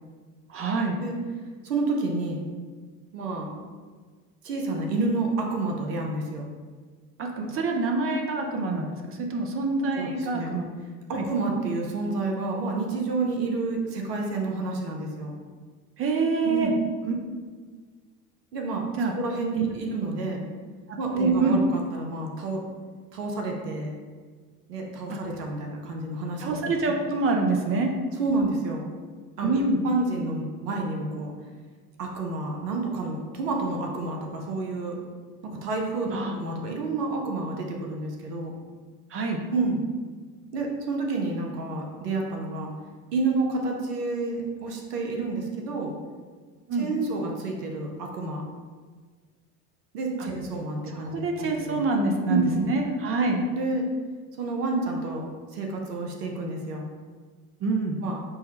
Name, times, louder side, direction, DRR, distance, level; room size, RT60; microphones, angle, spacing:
voice 1, 0.5-1.0 7.2-10.7 11.1-11.2 16.0-16.7 17.0-17.1 19.0-19.1 20.9-21.6 25.1-25.2 26.4-27.9 29.4-29.8 36.1-36.3 39.1-39.4 46.7-46.9 51.1-53.4 57.6-58.0, right 3 dB, 30° right, 2 dB, 0.5 m, -26 dB
voice 2, 1.6-2.4 3.1-3.5 4.4-6.5 9.8-10.5 11.1-15.3 16.4-16.8 18.5-18.9 19.2-20.4 21.0-22.6 23.1-23.9 24.7-26.7 28.2-28.9 29.4-31.3 32.0-35.0 35.4-38.5 39.5-39.8 40.5-42.7 43.1-45.9 46.8-48.5 49.9-51.8 52.3-52.7 53.5-53.9 54.4-56.8 58.0-58.2, right 3 dB, 85° right, 1 dB, 0.8 m, -29 dB
5.5 x 2.1 x 2.9 m, 1.5 s
hypercardioid pair, 75°, 46 cm